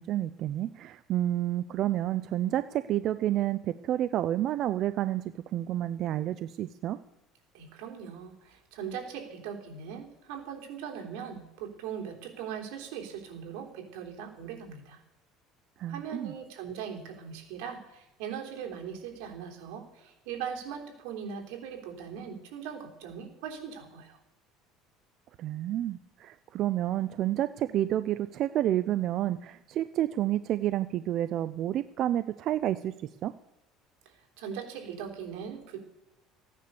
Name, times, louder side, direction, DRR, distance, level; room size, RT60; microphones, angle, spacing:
voice 1, 0.0-5.2 5.5-7.0 15.8-16.3 25.4-32.9 33.2-33.3, right 12 dB, 45° right, 12 dB, 0.4 m, -29 dB
voice 2, 7.5-15.0 15.9-24.2 34.1-35.8, right 7 dB, 85° right, 2 dB, 3.5 m, -40 dB
15.5 x 9.7 x 6.8 m, 0.93 s
cardioid pair, 160°, 0 cm